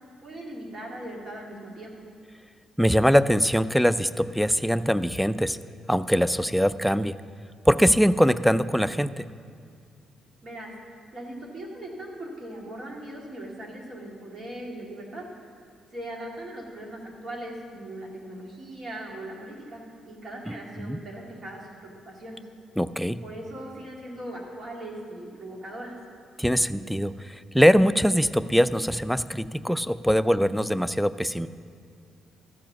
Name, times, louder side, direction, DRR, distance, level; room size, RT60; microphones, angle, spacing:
voice 1, 0.2-2.1 10.4-15.5 15.9-22.4 23.2-26.0, right 1 dB, 50° right, -1 dB, 2.2 m, -39 dB
voice 2, 2.8-5.6 5.9-7.2 7.7-9.3 20.8-21.0 22.8-23.2 26.4-31.5, equal, ahead, 12 dB, 0.3 m, -22 dB
14.0 x 5.0 x 7.0 m, 2.3 s
cardioid pair, 90°, 0 cm